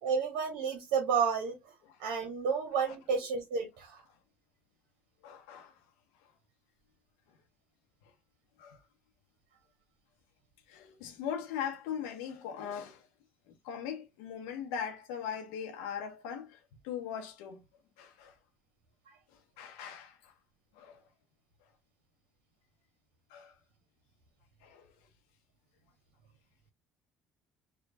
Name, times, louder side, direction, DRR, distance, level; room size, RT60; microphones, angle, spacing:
voice 1, 0.0-1.6 2.0-4.0, right 6 dB, 70° right, 0.8 m, -31 dB
voice 2, 5.2-5.8 8.6-8.8 10.7-13.1 13.5-17.6 18.0-18.4 19.3-20.3 20.7-21.0 23.3-23.6 24.6-24.9, left 8 dB, 80° left, 0.7 m, -40 dB
4.5 x 2.2 x 2.6 m
hypercardioid pair, 60°, 5 cm